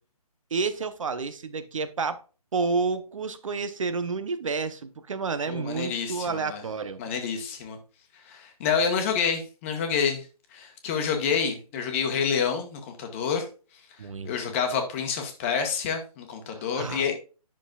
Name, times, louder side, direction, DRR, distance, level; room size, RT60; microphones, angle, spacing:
voice 1, 0.5-2.2 2.5-7.0 14.0-14.3 16.5-17.0, right 4 dB, 55° right, 0.9 m, -30 dB
voice 2, 5.4-6.6 7.0-7.8 8.3-10.3 10.5-13.5 14.2-17.2, left 6 dB, 20° left, 1.3 m, -28 dB
10.5 x 6.2 x 2.4 m
figure-of-eight pair, 155°, 20 cm